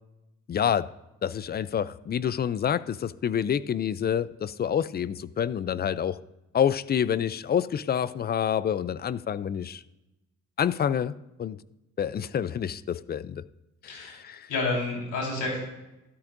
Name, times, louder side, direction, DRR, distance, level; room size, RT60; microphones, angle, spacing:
voice 1, 0.5-0.9 1.2-6.2 6.5-9.8 10.6-11.6 12.0-13.4 13.8-14.5, left 8 dB, 35° left, 17 dB, 0.4 m, -28 dB
voice 2, 13.8-14.2 14.5-15.6, left 3 dB, 90° left, -2 dB, 4.3 m, -29 dB
13.0 x 12.0 x 2.6 m, 0.96 s
cardioid pair, 90°, 30 cm